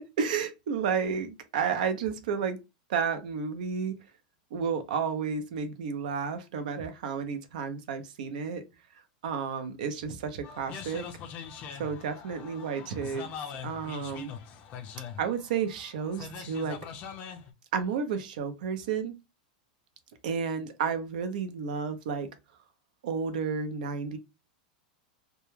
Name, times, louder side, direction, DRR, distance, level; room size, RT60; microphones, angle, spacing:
voice 1, 0.2-2.6 2.9-4.0 4.5-8.6 9.2-11.1 11.8-13.3 13.6-14.3 15.2-16.8 17.7-19.1 20.2-22.3 23.0-24.2, right 6 dB, 75° right, 0.6 m, -31 dB
sound 1, 10.4-17.5, left 7 dB, 35° left, 0.4 m, -42 dB
2.2 x 2.2 x 3.1 m
supercardioid pair, 145°, 4 cm